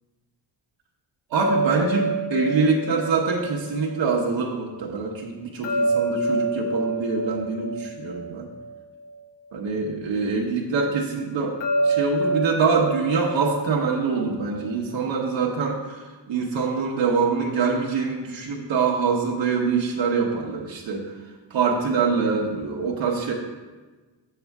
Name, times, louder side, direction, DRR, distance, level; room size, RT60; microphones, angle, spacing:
sound 1, 1.3-4.4 5.6-9.1 11.6-14.7, right 2 dB, 85° left, 1.1 m, -27 dB
voice 1, 1.3-8.5 9.5-21.1 21.5-23.3, right 5 dB, 85° right, -2 dB, 1.0 m, -24 dB
7.3 x 6.8 x 3.4 m, 1.3 s
wide cardioid pair, 135°, 44 cm